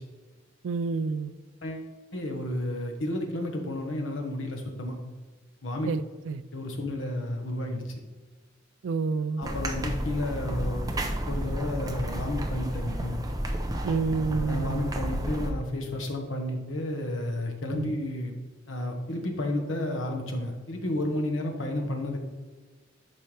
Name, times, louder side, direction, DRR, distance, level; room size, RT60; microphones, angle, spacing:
voice 1, 0.6-1.3 5.9-6.4 8.8-9.4 13.8-14.9 17.7-17.9, right 4 dB, 75° right, 15 dB, 0.4 m, -29 dB
voice 2, 1.6-5.0 5.6-5.9 6.5-7.8 9.4-10.8 11.3-13.2 14.4-18.3 18.7-22.2, left 1 dB, 85° left, 2 dB, 1.3 m, -32 dB
sound 1, 9.4-15.5, right 1 dB, 20° right, 0.7 m, -31 dB
11.0 x 4.5 x 3.3 m, 1.3 s
head